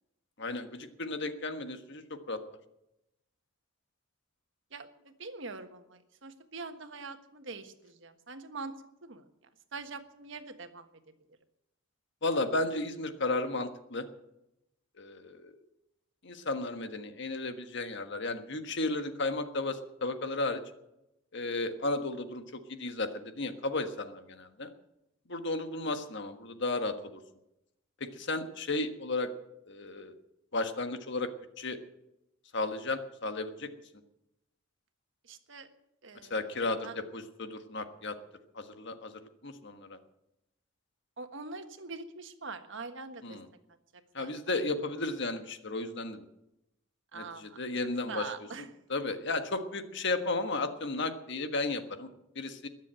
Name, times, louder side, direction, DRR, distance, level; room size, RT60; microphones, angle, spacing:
voice 1, 0.4-2.4 12.2-14.0 15.0-15.6 16.2-20.6 21.3-24.7 25.3-27.2 28.0-29.3 29.7-30.1 30.5-31.3 31.6-31.8 32.5-33.7 36.3-38.2 38.5-40.0 43.2-43.4 44.1-46.2 47.1-48.2 48.9-52.1 52.3-52.7, left 2 dB, 60° left, 8 dB, 1.5 m, -34 dB
voice 2, 4.7-8.7 9.0-9.2 9.7-10.9 35.2-35.7 36.0-36.4 36.8-36.9 41.2-43.4 44.1-44.5 47.1-47.6 48.1-48.7, right 4 dB, 65° right, 8 dB, 1.5 m, -43 dB
21.0 x 7.5 x 8.9 m, 0.89 s
head